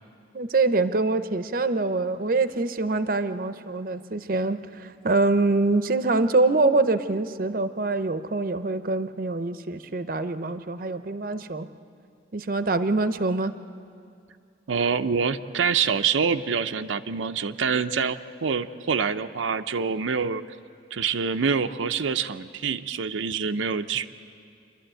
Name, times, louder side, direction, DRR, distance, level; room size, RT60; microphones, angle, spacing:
voice 1, 0.3-11.7 12.3-13.5, right 3 dB, 45° right, 11 dB, 0.6 m, -24 dB
voice 2, 14.7-20.4 20.9-24.1, right 6 dB, 90° right, 7 dB, 0.5 m, -26 dB
28.5 x 12.0 x 9.0 m, 2.4 s
head